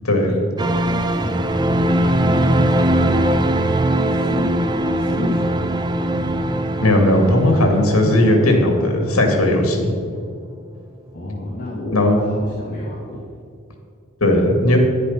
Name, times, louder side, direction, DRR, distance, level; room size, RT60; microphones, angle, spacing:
voice 1, 0.0-0.4 6.8-9.9 11.9-12.2 14.2-14.8, left 1 dB, 70° left, 3 dB, 2.4 m, -16 dB
sound 1, 0.6-9.7 10.0-10.1, right 1 dB, 20° right, 0.6 m, -20 dB
voice 2, 0.8-1.6 2.1-2.9 4.1-4.5 5.0-5.7 11.1-13.2, left 1 dB, 40° left, -5 dB, 2.3 m, -31 dB
10.5 x 10.0 x 5.8 m, 2.2 s
head